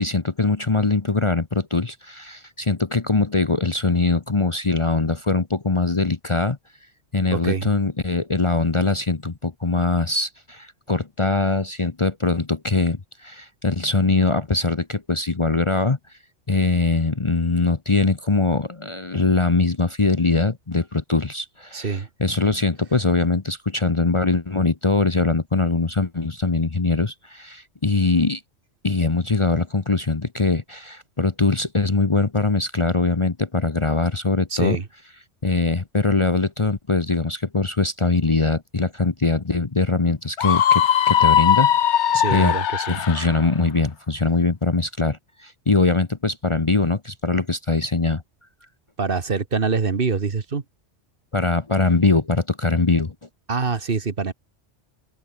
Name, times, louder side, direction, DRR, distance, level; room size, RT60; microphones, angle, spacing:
voice 1, 0.0-6.6 7.1-16.0 16.5-28.4 28.8-34.8 35.4-42.6 42.9-48.2 51.3-53.1, left 3 dB, 30° left, 1.0 m, -22 dB
voice 2, 7.3-7.7 21.7-22.1 34.5-34.9 42.1-43.0 49.0-50.6 53.5-54.3, right 5 dB, 50° right, 1.5 m, -25 dB
Screaming, 40.4-43.3, left 9 dB, 75° left, 1.1 m, -19 dB
omnidirectional pair, 1.2 m